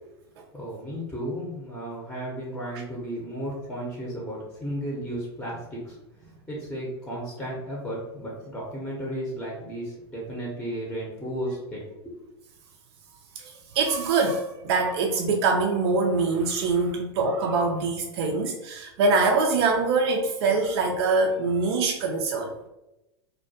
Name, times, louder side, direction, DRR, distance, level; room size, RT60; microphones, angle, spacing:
voice 1, 0.5-6.0 6.5-11.8, equal, 5° left, -4 dB, 0.6 m, -34 dB
voice 2, 13.4-22.5, right 3 dB, 65° right, 1 dB, 0.4 m, -24 dB
2.2 x 2.2 x 2.6 m, 0.94 s
hypercardioid pair, 100°, 14 cm